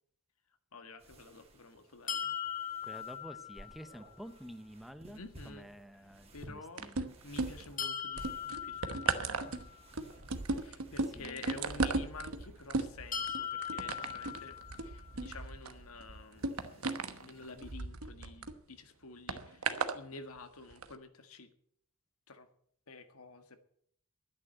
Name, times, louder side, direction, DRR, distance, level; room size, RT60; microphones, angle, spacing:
voice 1, 0.7-2.3 5.1-5.7 6.3-6.9 7.2-9.4 10.6-21.5 22.3-22.5 22.9-23.6, left 3 dB, 85° left, 8 dB, 1.6 m, -50 dB
sound 1, 1.0-17.7, right 1 dB, 30° right, 2.5 m, -58 dB
sound 2, 2.1-4.0 7.8-9.8 13.1-15.1, left 8 dB, 40° left, 1.2 m, -40 dB
voice 2, 2.8-7.1 11.1-11.4, equal, ahead, 10 dB, 0.8 m, -50 dB
sound 3, 6.8-7.8 8.2-18.5 19.3-20.0 20.7-20.8, right 3 dB, 80° right, 1.1 m, -36 dB
12.0 x 10.0 x 7.8 m, 0.66 s
head